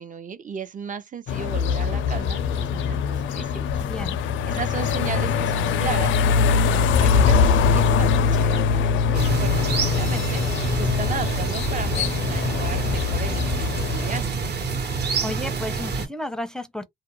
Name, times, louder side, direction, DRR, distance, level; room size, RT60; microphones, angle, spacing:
voice 1, 0.0-3.7 4.5-14.3, right 6 dB, 40° right, 0.6 m, -35 dB
sound 1, 1.3-14.2, left 6 dB, 75° left, 0.4 m, -22 dB
voice 2, 3.8-4.2 14.9-16.8, left 1 dB, 5° left, 0.5 m, -33 dB
sound 2, 9.1-16.1, right 4 dB, 55° right, 1.1 m, -27 dB
2.4 x 2.1 x 3.0 m
cardioid pair, 90°, 20 cm